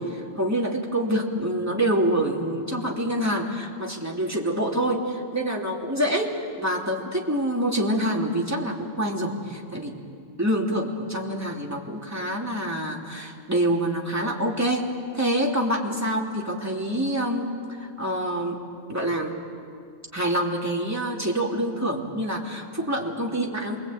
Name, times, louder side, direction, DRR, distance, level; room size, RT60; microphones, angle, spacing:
voice 1, 0.0-10.0 10.4-14.9 15.1-18.6 18.9-19.4 20.1-23.8, right 1 dB, 15° right, -2 dB, 3.1 m, -26 dB
27.5 x 22.5 x 8.9 m, 2.2 s
omnidirectional pair, 1.2 m